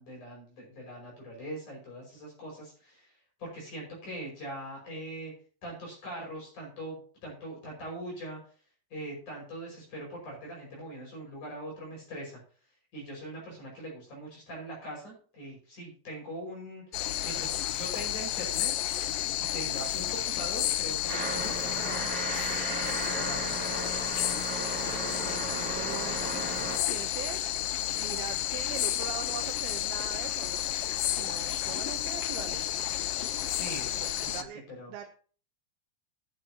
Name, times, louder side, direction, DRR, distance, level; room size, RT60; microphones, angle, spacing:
voice 1, 0.0-3.1 3.4-5.3 5.6-8.4 8.9-12.4 12.9-18.9 19.4-23.5 33.5-34.0 34.2-34.9, right 1 dB, 55° left, -2 dB, 7.0 m, -42 dB
sound 1, 16.9-34.4, left 12 dB, 75° left, 2.4 m, -31 dB
sound 2, 21.1-26.8, right 3 dB, 55° right, 4.7 m, -35 dB
voice 2, 25.2-26.5 26.9-27.4 27.9-30.7 31.1-32.8 33.9-34.6 34.9-35.1, right 10 dB, 90° right, 4 dB, 2.9 m, -42 dB
12.5 x 11.5 x 2.9 m, 0.41 s
omnidirectional pair, 4.3 m